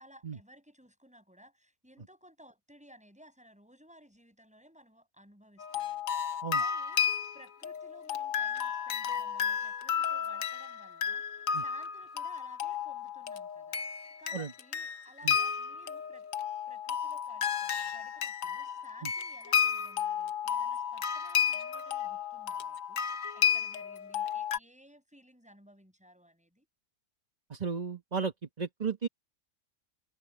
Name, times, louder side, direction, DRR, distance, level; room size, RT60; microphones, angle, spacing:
voice 1, 0.0-13.8 14.2-26.7, equal, 5° right, 8.0 m, -57 dB
sound 1, 5.6-24.6, left 8 dB, 70° left, 1.3 m, -32 dB
voice 2, 27.5-29.1, right 5 dB, 30° right, 1.3 m, -34 dB
omnidirectional pair, 1.5 m